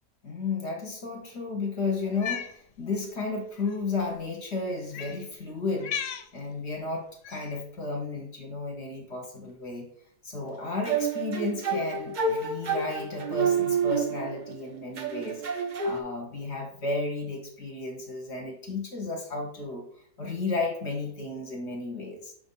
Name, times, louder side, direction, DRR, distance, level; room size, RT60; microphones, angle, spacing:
voice 1, 0.2-5.9 6.3-9.9 10.2-19.8 20.2-22.3, left 3 dB, 45° left, 1 dB, 1.3 m, -33 dB
Cat, 2.1-2.5 3.6-3.8 4.9-5.2 5.8-6.3 7.2-7.6, left 8 dB, 85° left, 0.5 m, -35 dB
sound 1, 10.9-14.5 15.0-16.0, right 5 dB, 70° right, 0.4 m, -28 dB
6.8 x 2.6 x 5.4 m, 0.63 s
omnidirectional pair, 1.7 m